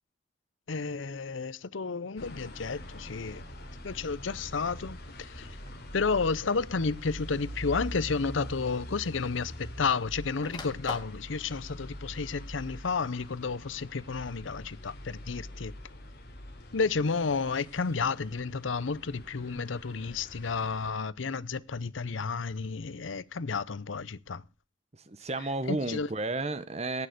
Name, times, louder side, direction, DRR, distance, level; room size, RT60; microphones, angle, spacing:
voice 1, 0.7-3.4 3.8-5.6 5.9-15.7 16.7-24.4 25.7-26.1, left 4 dB, 80° left, 0.7 m, -31 dB
sound 1, 2.2-20.9, equal, 55° left, 3.2 m, -44 dB
sound 2, 5.6-5.9 6.9-7.0 8.4-8.5 8.8-9.9 10.2-11.2, left 3 dB, 20° left, 2.1 m, -43 dB
voice 2, 25.1-27.1, right 2 dB, 35° right, 1.0 m, -32 dB
17.0 x 6.6 x 6.7 m
head